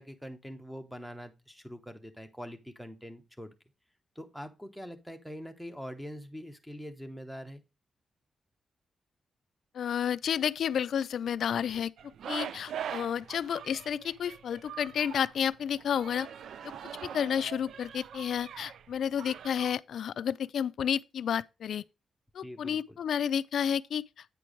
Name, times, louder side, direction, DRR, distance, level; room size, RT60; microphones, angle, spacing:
voice 1, 0.0-3.5 4.1-7.6 22.4-23.0, equal, ahead, 0.9 m, -44 dB
voice 2, 9.7-11.9 12.3-16.3 17.1-21.8 22.3-24.2, left 8 dB, 65° left, 0.4 m, -31 dB
sound 1, 12.0-19.7, right 9 dB, 75° right, 0.3 m, -43 dB
9.1 x 4.6 x 5.0 m
wide cardioid pair, 165°, 0 cm